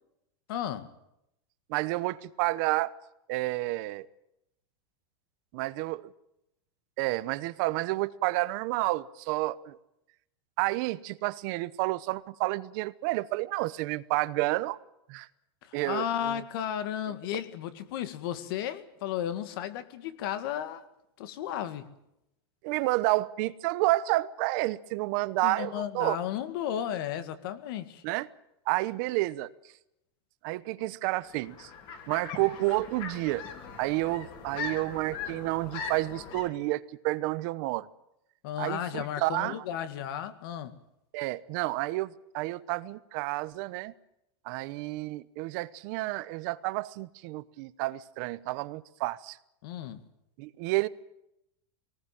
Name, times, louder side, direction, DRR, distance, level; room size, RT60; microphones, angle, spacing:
voice 1, 0.5-0.9 15.6-20.8 21.2-21.9 25.4-28.0 38.4-40.8 49.6-50.0, left 10 dB, 60° left, 2.0 m, -34 dB
voice 2, 1.7-2.9 3.3-4.1 5.5-6.1 7.0-9.8 10.6-14.8 15.1-15.3 15.7-16.4 22.6-26.2 28.0-28.3 28.7-29.5 30.4-31.7 32.1-33.4 33.8-37.9 38.6-39.6 41.1-43.9 44.4-49.4 50.4-50.9, right 19 dB, 50° right, 0.9 m, -30 dB
sound 1, 31.2-36.5, left 5 dB, 40° left, 3.6 m, -40 dB
22.5 x 19.5 x 8.8 m
supercardioid pair, 160°, 14 cm